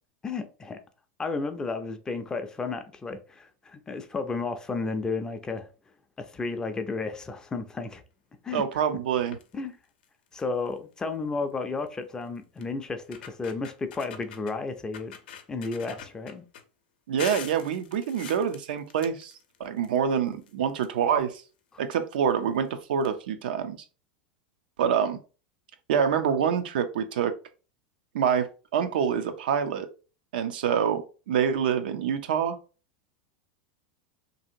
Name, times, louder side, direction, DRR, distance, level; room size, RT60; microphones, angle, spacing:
voice 1, 0.2-0.8 1.2-5.7 6.2-8.0 8.4-8.7 9.5-9.8 10.3-15.1 15.5-16.4, left 4 dB, 15° left, 0.4 m, -32 dB
voice 2, 8.5-9.4 17.1-19.3 19.6-21.4 21.8-23.8 24.8-25.2 25.9-27.3 28.1-28.5 28.7-29.9 30.3-31.0 31.3-32.6, right 7 dB, 85° right, 0.5 m, -26 dB
sound 1, 9.2-9.5 10.0-10.1 10.4-10.7 11.9-12.0 12.6-12.7 13.0-14.6 14.9-16.6 17.2-20.0 20.3-21.4 22.3-22.4 22.7-22.8 23.0-23.1, left 8 dB, 85° left, 0.5 m, -44 dB
2.8 x 2.7 x 2.5 m
supercardioid pair, 130°, 5 cm